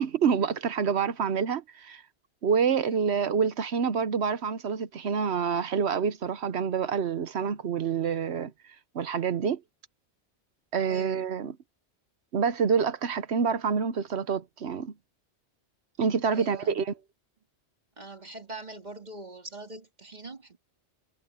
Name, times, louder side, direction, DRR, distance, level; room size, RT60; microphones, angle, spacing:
voice 1, 0.0-2.0 2.4-8.5 8.9-9.6 10.7-11.6 12.3-14.9 16.0-16.9, right 6 dB, 70° right, 1.1 m, -27 dB
voice 2, 10.8-11.2 16.3-16.8 18.0-20.6, right 2 dB, 40° right, 2.7 m, -43 dB
omnidirectional pair, 1.2 m